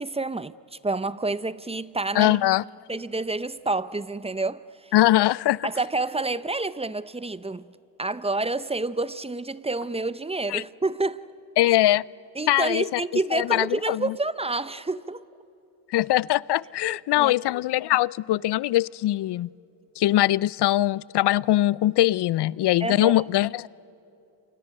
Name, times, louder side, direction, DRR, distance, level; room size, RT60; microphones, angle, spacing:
voice 1, 0.0-2.4 2.9-4.9 5.6-7.7 8.0-11.3 12.4-15.2 16.8-17.4 22.8-23.1, right 2 dB, 15° right, 0.7 m, -29 dB
voice 2, 2.1-2.6 4.9-5.7 10.5-10.6 11.6-12.0 12.5-13.0 13.3-14.1 15.9-19.5 20.0-23.7, left 15 dB, 70° left, 0.5 m, -22 dB
30.0 x 26.0 x 6.5 m
cardioid pair, 75°, 42 cm